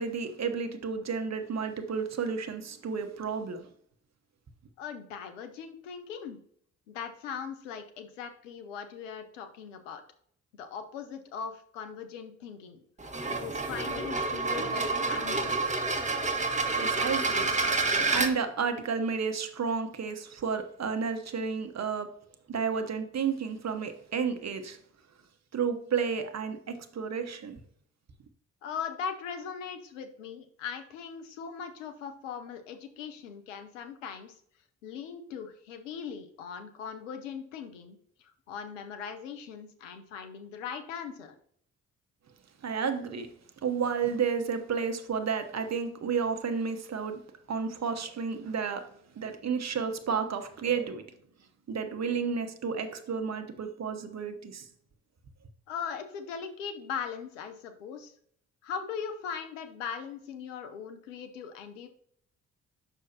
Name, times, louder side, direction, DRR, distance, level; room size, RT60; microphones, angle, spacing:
voice 1, 0.0-3.7 16.7-17.6 18.1-22.1 22.5-24.8 25.5-27.6 42.6-43.3 43.6-47.2 47.5-48.9 49.1-51.0 51.7-54.7, right 6 dB, 45° right, 1.1 m, -31 dB
voice 2, 4.8-6.4 6.9-10.0 10.5-12.8 13.3-15.6 28.6-34.4 34.8-41.3 55.7-58.1 58.6-61.9, left 7 dB, 90° left, 0.7 m, -40 dB
sound 1, 13.0-18.3, right 3 dB, 20° right, 1.4 m, -28 dB
7.5 x 6.4 x 2.8 m
hypercardioid pair, 40°, 37 cm